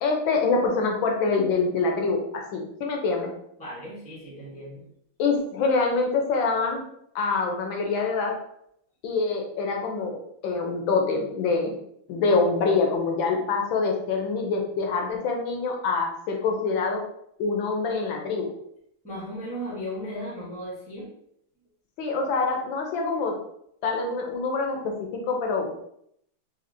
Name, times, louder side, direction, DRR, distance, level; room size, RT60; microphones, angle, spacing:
voice 1, 0.0-3.3 5.2-6.8 7.1-8.3 9.0-11.7 12.1-17.0 17.4-18.5 22.0-23.3 23.8-25.8, left 4 dB, 70° left, 1 dB, 1.3 m, -25 dB
voice 2, 3.6-4.9 19.0-21.1, equal, 10° left, -5 dB, 0.4 m, -36 dB
4.2 x 2.8 x 2.6 m, 0.72 s
omnidirectional pair, 2.4 m